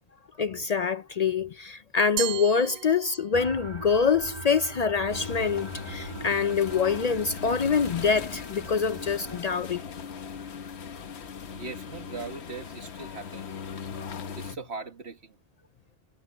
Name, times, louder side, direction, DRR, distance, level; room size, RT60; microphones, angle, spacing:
voice 1, 0.4-9.8, left 5 dB, 50° left, 0.5 m, -25 dB
Glass, 2.2-3.6, right 11 dB, 70° right, 0.8 m, -35 dB
sound 1, 3.3-9.4, right 2 dB, 40° right, 2.0 m, -42 dB
sound 2, 5.1-14.6, left 6 dB, 85° left, 1.3 m, -39 dB
voice 2, 11.5-13.5 14.4-15.4, right 4 dB, 85° right, 1.9 m, -40 dB
omnidirectional pair, 1.1 m